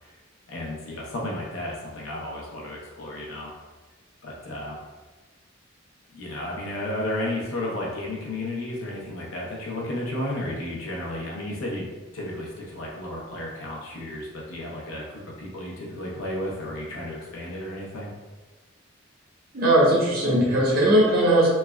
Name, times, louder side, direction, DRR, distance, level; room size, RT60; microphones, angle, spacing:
voice 1, 0.5-3.5 4.2-4.8 6.1-11.9 12.1-18.1, left 1 dB, 85° left, -3 dB, 0.7 m, -33 dB
voice 2, 19.5-21.5, right 1 dB, 45° right, -5 dB, 0.8 m, -19 dB
3.2 x 2.3 x 2.2 m, 1.3 s
head